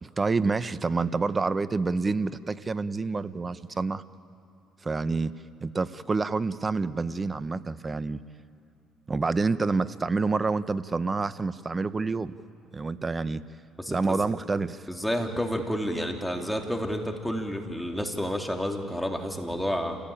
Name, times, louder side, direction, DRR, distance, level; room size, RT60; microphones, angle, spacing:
voice 1, 0.0-4.0 4.8-5.3 5.6-8.2 9.1-12.3 12.7-13.4 13.9-14.9, right 4 dB, 30° right, 14 dB, 1.0 m, -28 dB
voice 2, 13.8-14.2 14.9-20.0, equal, 5° left, 2 dB, 3.2 m, -30 dB
28.5 x 17.5 x 8.9 m, 2.5 s
hypercardioid pair, 60°, 0 cm